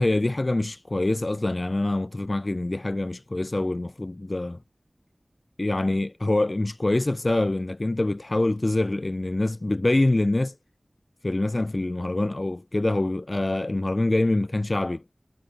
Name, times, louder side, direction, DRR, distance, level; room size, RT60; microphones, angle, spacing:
voice 1, 0.0-4.6 5.6-10.5 11.2-15.0, left 2 dB, 45° left, 0.3 m, -25 dB
wide cardioid pair, 45°, 0 cm